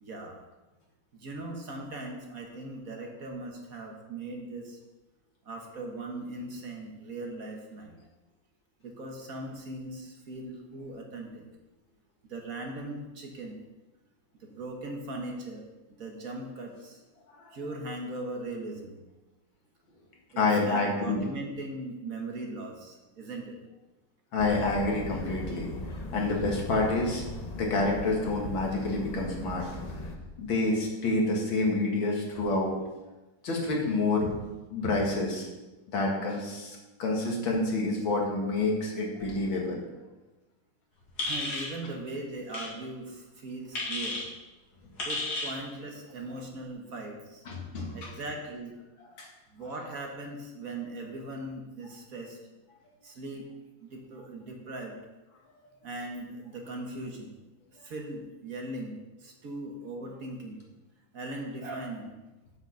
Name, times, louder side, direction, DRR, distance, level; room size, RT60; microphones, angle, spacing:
voice 1, 0.0-0.4 1.2-4.8 5.4-7.9 8.8-11.4 12.3-13.6 14.4-17.0 17.5-19.0 20.3-23.6 41.2-44.2 45.0-47.4 47.9-48.7 49.5-52.4 53.0-53.4 53.8-55.0 55.8-57.3 57.8-60.7 61.1-62.2, right 2 dB, 50° right, 1 dB, 1.6 m, -39 dB
voice 2, 20.4-21.2 24.3-25.7 26.1-27.2 27.5-29.8 30.4-32.8 33.4-34.3 34.7-35.5 35.9-39.8 47.5-48.1 49.2-49.3, left 2 dB, 90° left, -1 dB, 2.6 m, -28 dB
sound 1, 24.4-30.2, left 2 dB, 40° left, 0.5 m, -39 dB
sound 2, 41.2-41.7 42.5-42.7 43.7-44.2 45.0-45.6, left 2 dB, 55° left, 2.7 m, -32 dB
7.9 x 6.1 x 6.4 m, 1.1 s
omnidirectional pair, 2.1 m